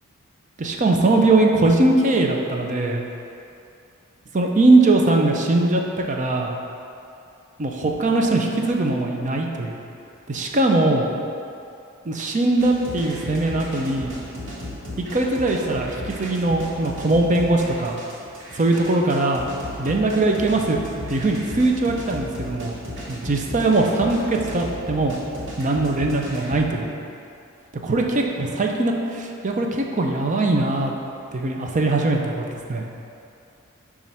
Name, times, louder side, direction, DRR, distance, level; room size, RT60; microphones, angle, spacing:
voice 1, 0.6-3.0 4.3-6.6 7.6-9.8 10.3-11.1 12.0-14.1 15.1-17.9 18.5-19.4 19.8-20.8 21.1-22.8 23.1-25.1 25.6-27.0 27.8-30.9 31.3-32.9, right 2 dB, 35° right, 1 dB, 0.5 m, -21 dB
sound 1, 12.6-26.6, left 1 dB, 60° right, 1.3 m, -35 dB
7.3 x 2.5 x 5.5 m, 2.6 s
head